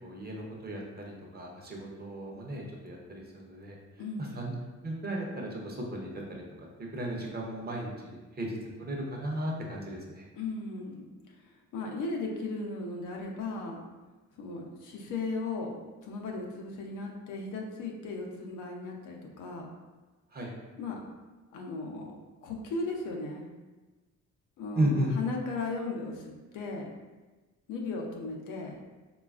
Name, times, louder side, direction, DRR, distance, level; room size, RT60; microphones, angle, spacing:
voice 1, 0.0-3.8 4.2-4.5 4.8-10.3 20.3-20.5 24.7-25.1, right 1 dB, 35° right, -1 dB, 0.6 m, -35 dB
voice 2, 4.0-4.4 10.4-13.8 14.4-15.8 16.0-19.7 20.8-21.0 21.5-23.5 24.6-26.3 26.5-27.0 27.7-28.8, left 3 dB, 90° left, 0 dB, 0.6 m, -36 dB
3.1 x 2.3 x 2.3 m, 1.2 s
cardioid pair, 90°, 30 cm